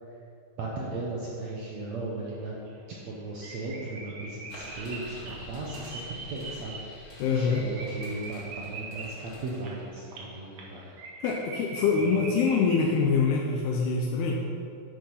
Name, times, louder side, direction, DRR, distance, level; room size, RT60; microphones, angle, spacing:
voice 1, 0.6-2.5 3.1-6.8 7.3-10.8 12.0-12.2, right 2 dB, 65° right, -4 dB, 1.8 m, -36 dB
sound 1, 2.3-2.4 2.7-2.8 3.1-3.2 3.4-13.2 13.5-13.6, right 3 dB, 50° right, 2.0 m, -42 dB
sound 2, 4.5-11.1, left 1 dB, 60° left, 0.9 m, -48 dB
voice 2, 7.2-7.6 11.2-14.5, left 5 dB, 90° left, -1 dB, 2.9 m, -25 dB
9.1 x 8.9 x 5.6 m, 2.7 s
omnidirectional pair, 4.4 m